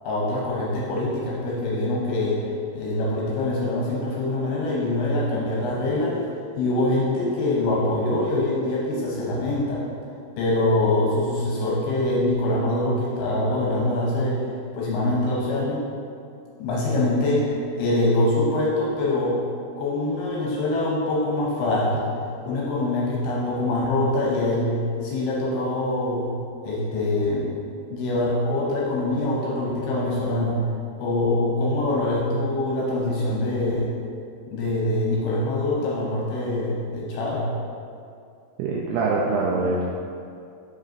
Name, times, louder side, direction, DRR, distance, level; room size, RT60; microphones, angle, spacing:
voice 1, 0.0-2.5 2.7-6.2 6.6-9.8 10.4-14.5 14.7-15.9 16.6-19.4 19.8-22.1 22.5-26.2 26.6-27.5 27.9-30.6 31.0-33.9 34.5-37.4, left 1 dB, 75° left, -4 dB, 2.6 m, -24 dB
voice 2, 38.6-39.9, right 3 dB, 85° right, -3 dB, 2.3 m, -24 dB
6.1 x 5.4 x 3.8 m, 2.4 s
omnidirectional pair, 5.2 m